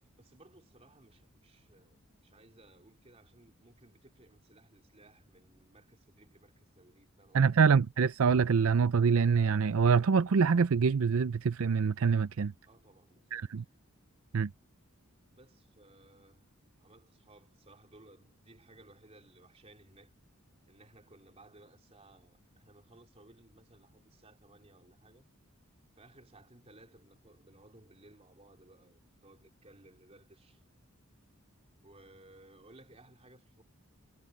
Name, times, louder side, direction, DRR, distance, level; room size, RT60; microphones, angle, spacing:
voice 1, 0.2-7.5 12.7-13.4 15.3-16.5 16.8-20.1 20.7-25.2 25.9-30.6 31.8-33.6, right 2 dB, 30° right, 3.6 m, -59 dB
voice 2, 7.3-12.5 13.3-13.6 14.3-14.5, right 5 dB, 70° right, 0.5 m, -25 dB
head